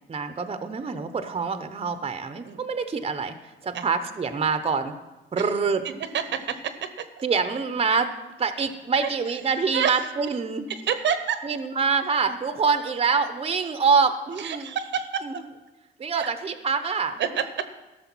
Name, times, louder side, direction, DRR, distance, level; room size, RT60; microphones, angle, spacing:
voice 1, 0.1-3.3 3.6-4.9 5.3-5.8 7.2-8.1 8.4-10.7 11.4-14.7 15.2-15.3 16.0-17.2, right 5 dB, 30° right, 9 dB, 0.8 m, -25 dB
voice 2, 6.1-6.9 9.7-10.0 10.7-11.4 14.4-15.2 16.1-16.3 17.2-17.7, right 8 dB, 65° right, 10 dB, 0.9 m, -27 dB
13.0 x 6.5 x 6.1 m, 1.1 s
cardioid pair, 90°, 20 cm